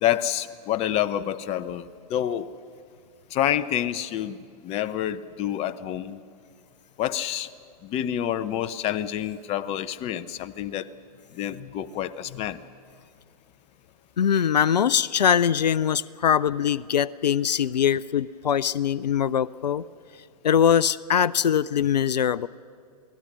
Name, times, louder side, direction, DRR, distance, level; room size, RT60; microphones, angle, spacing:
voice 1, 0.0-2.5 3.3-4.4 4.6-6.2 7.0-7.5 7.8-10.9 11.3-12.6, left 11 dB, 30° left, 15 dB, 0.8 m, -28 dB
voice 2, 14.2-19.8 20.4-22.5, left 8 dB, 85° left, 20 dB, 0.4 m, -22 dB
28.0 x 18.0 x 6.2 m, 2.3 s
hypercardioid pair, 115°, 21 cm